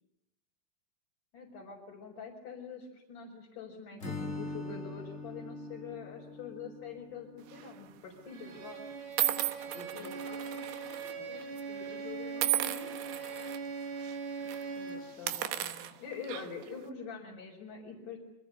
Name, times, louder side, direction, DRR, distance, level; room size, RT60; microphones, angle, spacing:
voice 1, 1.3-8.8 9.7-10.2 11.2-11.3 14.8-18.2, left 5 dB, 45° left, -4 dB, 6.2 m, -45 dB
Acoustic guitar / Strum, 4.0-7.9, left 2 dB, 25° left, 1.6 m, -43 dB
sound 1, 7.5-7.8 8.5-8.6 9.2-11.1 11.4-11.6 12.4-13.6 14.0-14.2 14.5-14.6 15.1-16.7, right 13 dB, 70° right, 3.1 m, -34 dB
Bowed string instrument, 8.3-15.2, right 5 dB, 90° right, 7.5 m, -41 dB
voice 2, 9.7-13.0, left 5 dB, 90° left, 2 dB, 6.5 m, -49 dB
29.0 x 25.5 x 6.8 m, 0.88 s
omnidirectional pair, 5.4 m